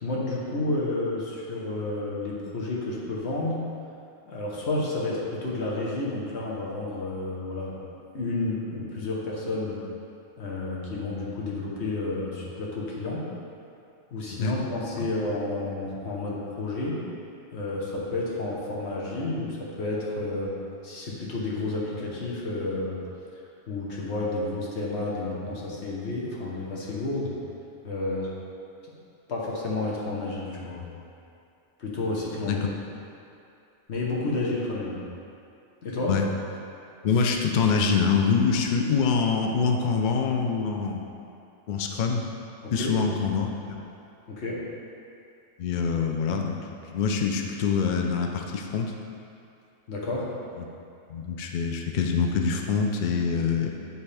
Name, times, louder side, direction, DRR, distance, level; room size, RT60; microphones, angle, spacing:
voice 1, 0.0-3.6 4.2-7.8 8.1-9.8 10.4-13.2 14.1-17.0 17.5-20.5 20.8-23.0 23.3-27.4 27.8-28.3 29.3-30.9 31.8-32.6 33.9-35.0 35.8-36.2 42.6-43.0 44.3-44.6 49.9-50.3, left 2 dB, 55° left, -5 dB, 1.3 m, -31 dB
voice 2, 37.0-41.0 41.7-42.3 42.7-43.8 45.6-46.6 46.9-48.9 50.6-50.7 51.1-53.7, left 5 dB, 80° left, 2 dB, 0.4 m, -25 dB
9.3 x 3.4 x 3.4 m, 2.6 s
omnidirectional pair, 1.4 m